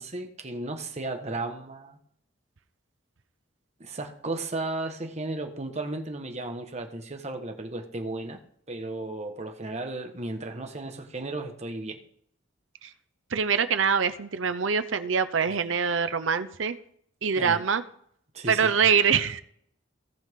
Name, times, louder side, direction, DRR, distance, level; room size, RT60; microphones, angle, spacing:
voice 1, 0.0-2.0 3.8-8.4 8.7-12.0 15.5-15.6 17.3-17.6 18.3-18.7, right 2 dB, 35° right, 5 dB, 1.3 m, -34 dB
voice 2, 13.3-16.8 17.2-17.8 18.5-19.4, right 6 dB, 75° right, 11 dB, 0.7 m, -24 dB
17.5 x 5.8 x 3.7 m, 0.67 s
head